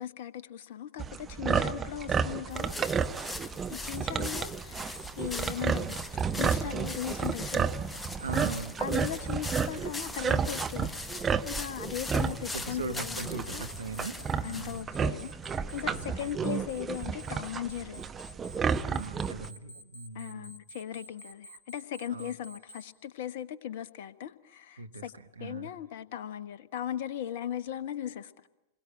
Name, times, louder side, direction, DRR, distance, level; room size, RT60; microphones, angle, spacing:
voice 1, 0.0-2.8 3.7-6.0 6.4-7.7 8.8-11.0 11.4-13.7 14.4-15.4 15.7-18.0 20.1-25.1 25.4-28.5, left 10 dB, 55° left, 15 dB, 1.1 m, -38 dB
sound 1, 1.0-19.5, right 6 dB, 20° right, 0.9 m, -32 dB
sound 2, 2.5-14.8, left 2 dB, 10° left, 1.0 m, -41 dB
Alarm, 2.9-3.3 3.9-4.3 4.9-5.3 5.9-6.3 6.9-7.3 7.9-8.3 8.9-9.3 9.9-10.3 10.9-11.3 11.9-12.3 12.9-22.8, right 1 dB, 70° left, 1.6 m, -49 dB
voice 2, 8.2-9.2 9.7-9.9 12.5-14.9 15.9-16.3 18.9-20.6 22.1-22.3 24.8-25.7, right 3 dB, 75° right, 8 dB, 1.2 m, -41 dB
28.0 x 22.0 x 9.0 m, 0.97 s
figure-of-eight pair, 90°, 0 cm